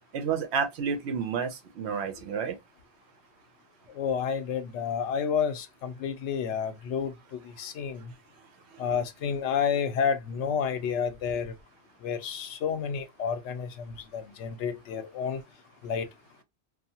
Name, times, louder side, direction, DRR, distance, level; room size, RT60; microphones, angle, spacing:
voice 1, 0.1-2.6 8.7-8.9, right 6 dB, 75° right, 0.8 m, -30 dB
voice 2, 4.0-7.1 7.6-8.0 8.8-11.5 12.0-13.7 14.1-15.4 15.8-16.1, left 7 dB, 85° left, 0.9 m, -30 dB
2.7 x 2.3 x 2.7 m
omnidirectional pair, 1.2 m